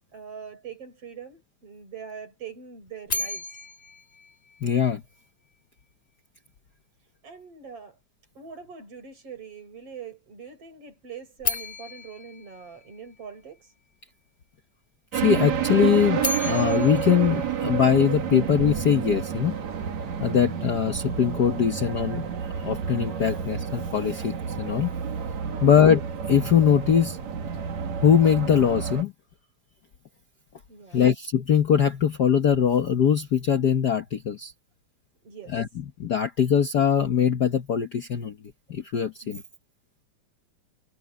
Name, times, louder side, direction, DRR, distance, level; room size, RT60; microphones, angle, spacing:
voice 1, 0.1-3.5 7.2-8.0 8.4-13.7 25.5-25.8 30.7-31.1 35.2-35.6 39.2-39.4, right 6 dB, 50° right, 7.0 m, -43 dB
sound 1, 3.1-5.2 11.4-13.6 15.9-18.3, left 3 dB, 25° left, 1.5 m, -34 dB
voice 2, 4.6-5.0 15.1-19.6 20.2-22.3 22.6-24.9 25.6-26.0 26.3-27.2 28.0-29.1 30.9-34.5 35.5-35.7 36.0-38.4 38.7-39.4, left 8 dB, 90° left, 0.9 m, -22 dB
sound 2, 15.1-29.0, right 7 dB, 65° right, 3.3 m, -29 dB
omnidirectional pair, 3.4 m